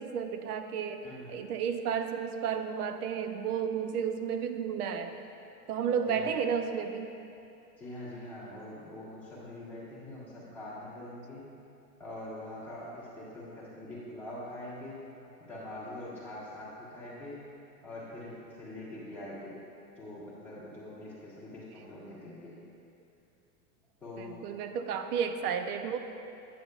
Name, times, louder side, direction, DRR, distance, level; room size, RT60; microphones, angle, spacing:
voice 1, 0.0-5.1 5.7-7.2 24.2-26.0, right 7 dB, 70° right, 8 dB, 0.7 m, -32 dB
voice 2, 7.8-11.4 12.0-15.0 15.4-17.4 17.8-19.6 20.0-22.5 24.0-24.4, left 1 dB, 5° left, -12 dB, 1.6 m, -44 dB
9.1 x 6.9 x 2.4 m, 2.7 s
supercardioid pair, 155°, 48 cm